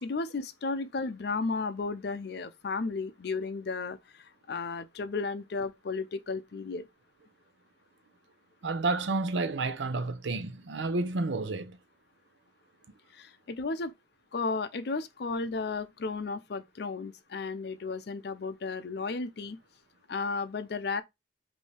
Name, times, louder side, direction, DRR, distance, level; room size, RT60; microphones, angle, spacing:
voice 1, 0.0-6.9 13.1-13.9 14.3-19.6 20.1-21.0, left 4 dB, 60° left, 0.5 m, -34 dB
voice 2, 8.6-11.8, right 3 dB, 80° right, 0.6 m, -30 dB
5.3 x 2.7 x 3.3 m
head